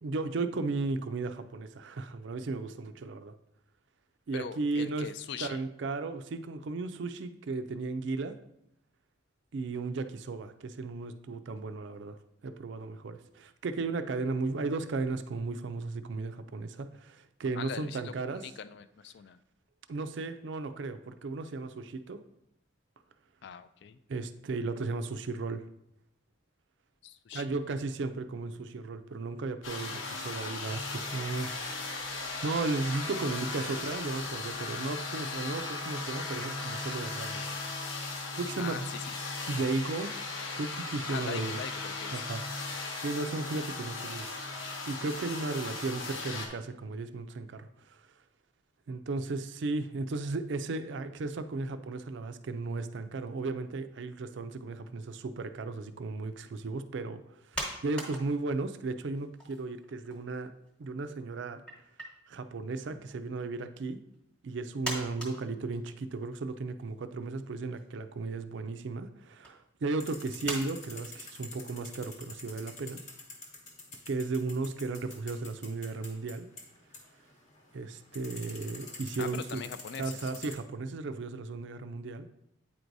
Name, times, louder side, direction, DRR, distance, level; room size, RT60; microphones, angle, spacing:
voice 1, 0.0-3.3 4.3-5.1 5.4-8.4 9.5-18.4 19.9-22.2 24.1-25.6 27.3-31.5 32.1-37.4 38.3-38.9 39.5-40.1 40.6-41.6 42.1-42.4 43.0-44.3 44.9-48.0 48.9-57.2 57.5-60.5 60.8-61.6 62.3-64.0 64.4-73.0 74.1-76.5 77.7-79.6 80.0-82.3, right 3 dB, 60° right, 10 dB, 0.4 m, -35 dB
voice 2, 4.3-5.6 17.6-19.4 23.4-24.0 27.0-27.8 38.6-39.2 41.1-42.3 79.2-80.3, left 7 dB, 55° left, 13 dB, 0.3 m, -42 dB
sound 1, 29.6-46.5, left 3 dB, 75° left, 1.0 m, -37 dB
sound 2, 57.5-58.8 59.1-60.4 60.7-60.8 61.7-62.1 62.9-63.3 64.1-64.2 64.8-66.3 66.8-66.9 67.3-67.9 68.6-68.9 69.4-69.5 70.4-70.6, right 1 dB, 5° left, 1.1 m, -39 dB
sound 3, 70.0-80.5, left 3 dB, 35° left, 1.0 m, -48 dB
8.6 x 4.6 x 2.6 m, 0.79 s
head